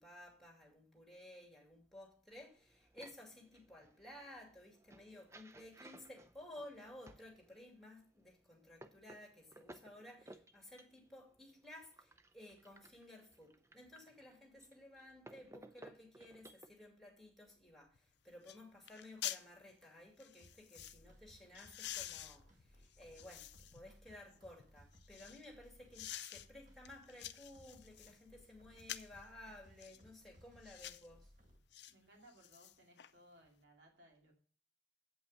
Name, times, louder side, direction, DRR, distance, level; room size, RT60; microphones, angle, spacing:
voice 1, 0.0-31.3, left 1 dB, ahead, 2.5 m, -56 dB
sound 1, 2.3-7.6 8.2-16.7, right 1 dB, 15° right, 0.5 m, -60 dB
sound 2, 17.9-18.0 18.5-18.6 18.9-19.5 20.2-21.0 21.5-23.8 24.3-25.4 25.9-26.5 26.8-28.2 28.8-29.2 29.8-30.0 30.6-31.1 31.7-31.9 32.3-33.1 33.5-33.6, left 12 dB, 70° left, 0.5 m, -48 dB
sound 3, 20.4-31.6, equal, 45° right, 1.7 m, -64 dB
voice 2, 31.9-34.3, equal, 75° right, 2.6 m, -64 dB
8.2 x 5.6 x 6.4 m
head